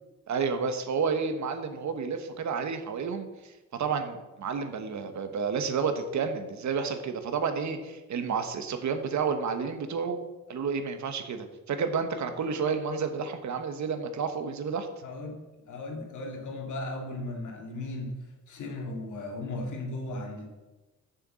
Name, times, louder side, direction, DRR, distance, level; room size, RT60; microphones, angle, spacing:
voice 1, 0.3-10.2 10.5-14.9, right 5 dB, 70° right, 8 dB, 1.1 m, -30 dB
voice 2, 15.0-18.2 18.5-20.5, left 2 dB, 75° left, 1 dB, 2.2 m, -36 dB
6.9 x 6.6 x 7.4 m, 1.1 s
cardioid pair, 105°, 30 cm